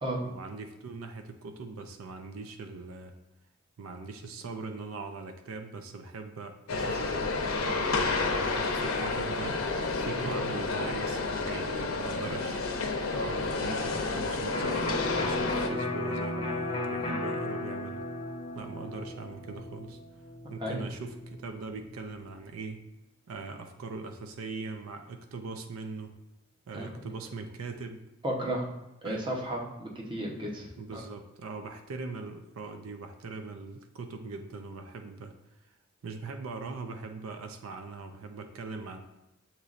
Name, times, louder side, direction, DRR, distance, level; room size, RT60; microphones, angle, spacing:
voice 1, 0.2-3.2 3.8-9.6 10.0-12.8 13.1-18.0 18.6-20.0 20.5-22.8 23.3-26.1 26.7-28.0 29.0-29.2 30.8-35.4 36.0-39.0, right 3 dB, 80° right, 6 dB, 0.5 m, -41 dB
sound 1, 6.7-15.7, left 3 dB, 80° left, 0.6 m, -30 dB
Electric guitar, 14.5-22.2, left 2 dB, 30° left, 0.7 m, -35 dB
voice 2, 28.2-28.7 29.0-31.0, right 1 dB, 25° right, -1 dB, 0.9 m, -34 dB
6.8 x 3.0 x 2.4 m, 0.97 s
head